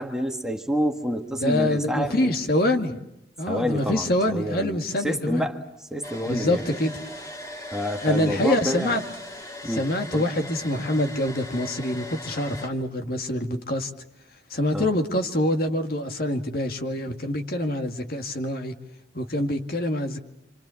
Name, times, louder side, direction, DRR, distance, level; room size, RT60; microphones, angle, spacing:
voice 1, 0.0-2.3 3.5-5.6 5.9-6.6 7.7-9.0 9.6-9.9 10.1-10.3 14.7-14.9, equal, 5° right, 1.7 m, -28 dB
voice 2, 1.4-3.0 3.4-5.5 6.3-6.9 8.0-9.0 9.6-13.9 14.5-18.7 19.1-20.2, left 1 dB, 55° left, 2.3 m, -25 dB
Domestic sounds home sounds, 6.0-12.7, left 1 dB, 20° left, 2.8 m, -39 dB
29.0 x 26.5 x 7.2 m
head